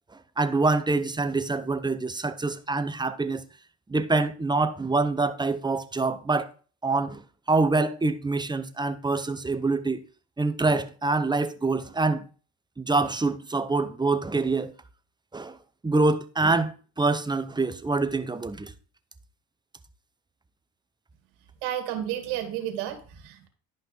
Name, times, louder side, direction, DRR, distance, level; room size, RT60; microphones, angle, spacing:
voice 1, 0.4-3.4 3.9-6.5 6.8-7.2 7.5-10.0 10.4-12.3 12.8-14.7 15.3-15.6 15.8-18.7, right 3 dB, 10° right, 0.7 m, -25 dB
voice 2, 21.6-23.5, right 11 dB, 75° right, 2.1 m, -32 dB
11.0 x 5.4 x 3.8 m
supercardioid pair, 85°, 40 cm